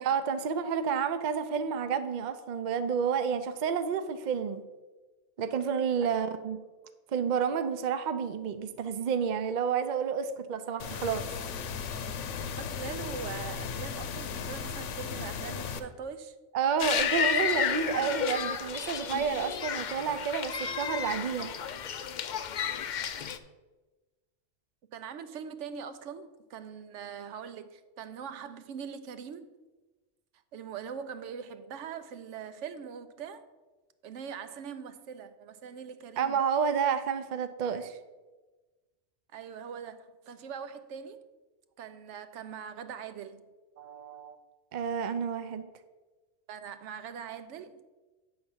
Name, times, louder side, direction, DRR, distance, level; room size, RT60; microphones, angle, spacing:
voice 1, 0.0-4.6 5.4-6.6 7.1-11.2 16.5-21.5 36.2-38.0 43.8-44.4 44.7-45.7, right 6 dB, 50° right, 0.6 m, -30 dB
sound 1, 10.8-15.8, left 6 dB, 90° left, 1.0 m, -36 dB
voice 2, 12.6-16.4 24.9-29.5 30.5-33.4 34.0-36.4 39.3-41.2 41.8-43.4 46.5-47.8, right 7 dB, 80° right, 0.9 m, -42 dB
sound 2, 16.8-23.4, left 8 dB, 60° left, 0.5 m, -32 dB
8.6 x 3.9 x 7.0 m
omnidirectional pair, 1.2 m